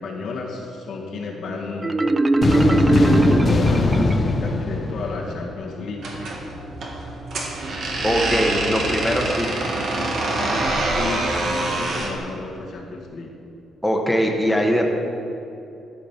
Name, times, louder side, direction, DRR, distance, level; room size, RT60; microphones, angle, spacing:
voice 1, 0.0-1.9 2.4-6.0 10.8-13.3, left 3 dB, 70° left, -1 dB, 1.6 m, -32 dB
Marimba xylophone, 1.8-4.6, right 2 dB, 20° right, 0.4 m, -20 dB
sound 1, 2.4-5.9, left 3 dB, 40° left, 0.6 m, -21 dB
sound 2, 6.0-12.2, right 2 dB, 65° right, 1.6 m, -25 dB
voice 2, 8.0-9.6 13.8-14.9, equal, 5° left, 0 dB, 1.2 m, -21 dB
13.0 x 5.0 x 5.9 m, 2.7 s
cardioid pair, 90°, 0 cm